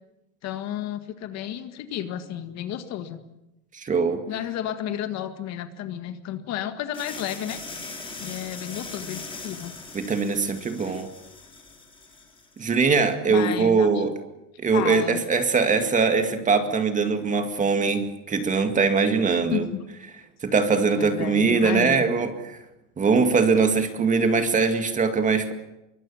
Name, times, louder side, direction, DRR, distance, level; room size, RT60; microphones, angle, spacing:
voice 1, 0.4-3.2 4.3-7.6 8.2-9.7 10.8-11.0 13.3-14.1 14.7-15.2 19.5-19.8 21.0-22.0, left 10 dB, 35° left, 9 dB, 1.8 m, -32 dB
voice 2, 3.7-4.2 9.9-11.1 12.6-14.1 14.6-19.7 20.4-22.6 23.0-25.5, right 4 dB, 15° right, 7 dB, 2.1 m, -22 dB
sound 1, 6.9-12.6, left 3 dB, 10° left, 4.8 m, -40 dB
25.5 x 23.5 x 7.3 m, 0.91 s
supercardioid pair, 145°, 44 cm